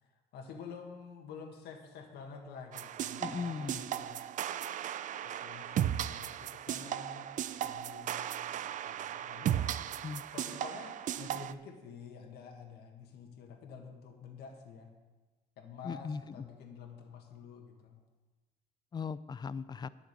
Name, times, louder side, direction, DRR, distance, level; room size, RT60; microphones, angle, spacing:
voice 1, 0.0-4.5 5.2-10.0 10.3-14.9 15.6-18.0, left 5 dB, 75° left, 2 dB, 1.7 m, -49 dB
sound 1, 2.7-11.5, right 10 dB, 50° right, 0.4 m, -36 dB
voice 2, 3.2-3.9 10.0-10.2 15.8-16.2 18.9-19.9, left 5 dB, 25° left, 16 dB, 0.4 m, -38 dB
10.5 x 6.5 x 8.2 m, 1.2 s
cardioid pair, 110°, 17 cm